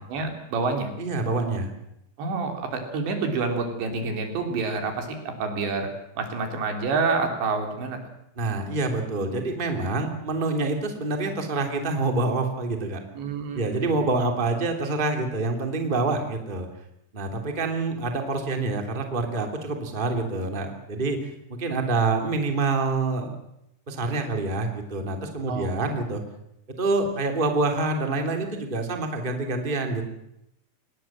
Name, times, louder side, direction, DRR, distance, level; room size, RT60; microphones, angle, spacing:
voice 1, 0.0-0.9 2.2-5.9 6.2-8.0 13.1-14.0 25.5-25.7, right 4 dB, 85° right, 5 dB, 5.8 m, -28 dB
voice 2, 1.0-1.7 8.4-13.0 13.5-16.7 17.1-23.4 23.9-26.2 26.8-30.0, right 3 dB, 15° right, 4 dB, 2.5 m, -26 dB
25.5 x 20.0 x 7.5 m, 0.82 s
omnidirectional pair, 5.0 m